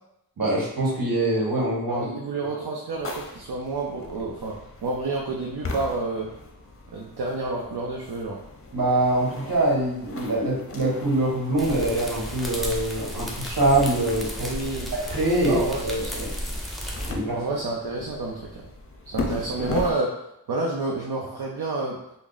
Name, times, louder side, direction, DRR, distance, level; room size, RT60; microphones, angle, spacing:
voice 1, 0.4-2.0 2.4-2.5 8.7-14.5 15.0-16.3 17.0-17.4, right 1 dB, 60° right, -4 dB, 1.3 m, -24 dB
voice 2, 1.9-4.6 4.8-6.3 6.9-8.4 14.5-14.9 15.5-16.3 17.3-18.6 19.0-20.1 20.5-22.0, right 3 dB, 75° right, -2 dB, 0.6 m, -29 dB
sound 1, 2.9-19.9, left 3 dB, 35° left, 0.6 m, -39 dB
sound 2, 11.6-17.1, equal, ahead, 0.6 m, -33 dB
3.5 x 2.0 x 3.9 m, 0.81 s
wide cardioid pair, 50°, 39 cm